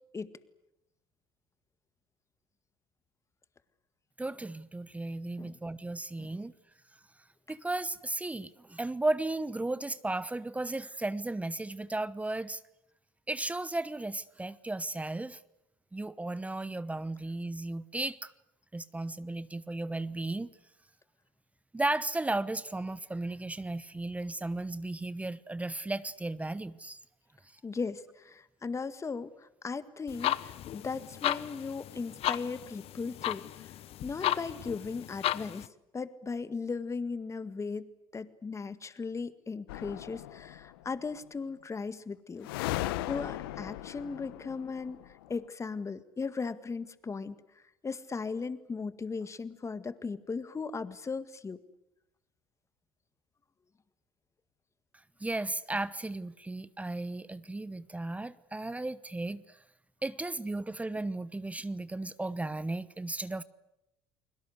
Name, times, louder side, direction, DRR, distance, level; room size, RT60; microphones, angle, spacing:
voice 1, 4.2-6.5 7.5-12.6 13.3-15.4 15.9-18.3 18.7-20.6 21.7-27.0 55.2-59.6 60.0-63.4, right 2 dB, 10° right, 17 dB, 1.0 m, -35 dB
voice 2, 27.6-33.7 34.0-35.7 35.9-37.9 38.1-47.4 47.8-51.6, left 4 dB, 25° left, 12 dB, 1.9 m, -37 dB
sound 1, 30.1-35.7, left 12 dB, 55° left, 1.1 m, -35 dB
sound 2, 39.7-40.8 42.4-45.3, left 16 dB, 90° left, 1.1 m, -37 dB
30.0 x 21.0 x 8.1 m, 0.87 s
supercardioid pair, 90°, 12 cm